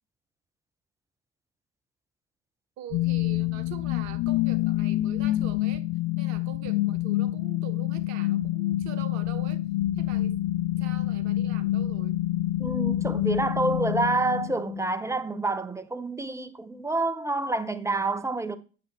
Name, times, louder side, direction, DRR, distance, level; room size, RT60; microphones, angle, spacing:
voice 1, 2.8-5.9 6.2-9.6 9.9-10.4 10.8-12.2, right 10 dB, 55° right, 1.1 m, -43 dB
sound 1, 2.9-14.9, left 15 dB, 45° left, 0.5 m, -27 dB
voice 2, 12.6-18.6, right 2 dB, 10° right, 0.7 m, -28 dB
8.4 x 6.7 x 3.2 m
figure-of-eight pair, 65°, 34 cm